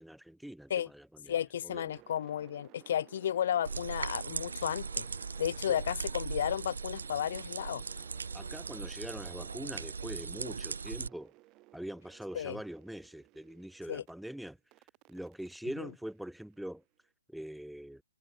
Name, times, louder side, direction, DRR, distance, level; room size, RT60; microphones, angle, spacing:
voice 1, 0.0-1.3 1.6-2.0 5.7-5.8 8.3-11.3 11.7-14.6 15.1-16.8 17.3-18.0, right 1 dB, ahead, 2.1 m, -43 dB
voice 2, 1.3-5.0 5.4-7.8 12.3-12.6 13.9-14.0, left 10 dB, 40° left, 1.6 m, -33 dB
sound 1, 1.7-14.1 14.7-16.8, right 21 dB, 15° right, 5.3 m, -59 dB
sound 2, 3.6-11.1, right 5 dB, 85° right, 2.0 m, -39 dB
hypercardioid pair, 170°, 0 cm